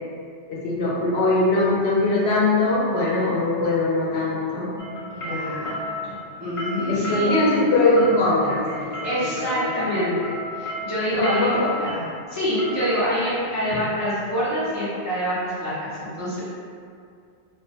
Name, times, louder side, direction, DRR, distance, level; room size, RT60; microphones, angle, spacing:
voice 1, 0.5-4.7 5.3-5.7 6.9-9.3 9.6-9.7 11.1-11.7, left 2 dB, 75° left, -6 dB, 0.8 m, -21 dB
sound 1, 4.8-14.6, left 1 dB, 50° left, 0.4 m, -33 dB
voice 2, 5.1-7.4 8.8-16.4, equal, 25° right, -12 dB, 0.4 m, -26 dB
2.1 x 2.1 x 2.6 m, 2.3 s
omnidirectional pair, 1.1 m